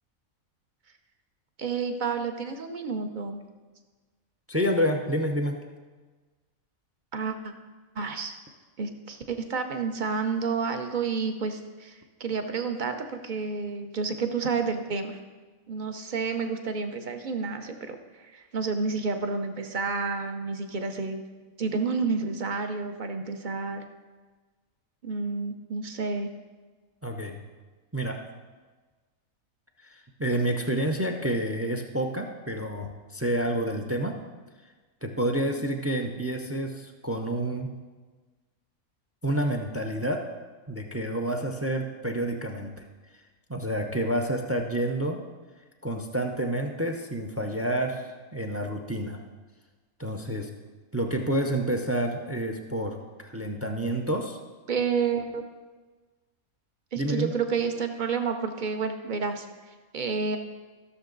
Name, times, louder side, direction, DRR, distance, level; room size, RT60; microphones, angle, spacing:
voice 1, 1.6-3.4 7.1-7.5 7.9-8.3 8.8-15.2 15.7-21.2 21.6-23.8 25.0-26.3 54.7-55.4 56.9-60.4, right 5 dB, 40° right, 6 dB, 0.8 m, -30 dB
voice 2, 4.5-5.6 27.0-27.4 27.9-28.2 29.8-34.2 35.0-37.7 39.2-40.2 40.7-42.8 43.5-45.2 45.8-49.2 50.0-50.5 50.9-53.0 53.2-54.4 57.0-57.3, right 1 dB, 20° right, 4 dB, 0.4 m, -29 dB
15.5 x 6.6 x 3.9 m, 1.3 s
omnidirectional pair, 1.5 m